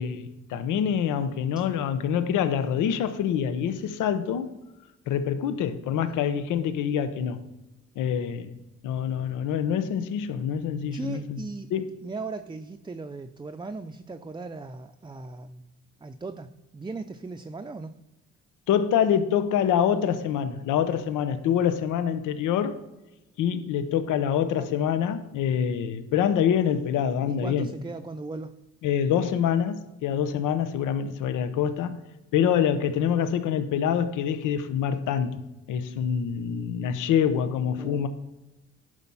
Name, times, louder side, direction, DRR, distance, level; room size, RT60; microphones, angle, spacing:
voice 1, 0.0-4.5 5.1-7.5 8.0-11.4 11.7-11.9 18.7-22.8 23.4-27.7 28.8-31.9 32.3-38.1, left 8 dB, 90° left, 11 dB, 0.9 m, -26 dB
voice 2, 10.9-11.7 12.0-15.7 16.0-17.9 24.5-24.7 27.3-28.5 37.8-38.1, right 3 dB, 15° right, 7 dB, 0.5 m, -38 dB
11.0 x 4.9 x 5.6 m, 1.0 s
cardioid pair, 90°, 30 cm